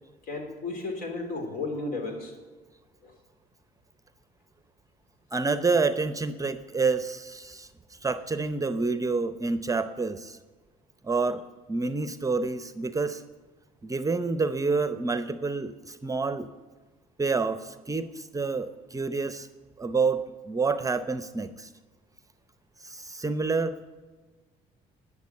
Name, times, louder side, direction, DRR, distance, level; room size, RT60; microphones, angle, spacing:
voice 1, 0.2-2.3 3.0-3.1, left 3 dB, 65° left, 3 dB, 3.2 m, -33 dB
voice 2, 5.3-10.4 11.0-11.4 11.7-13.2 13.8-16.5 17.2-19.5 19.8-21.7 22.8-23.8, right 4 dB, 20° right, 12 dB, 0.7 m, -28 dB
11.5 x 7.2 x 8.0 m, 1.3 s
supercardioid pair, 80°, 16 cm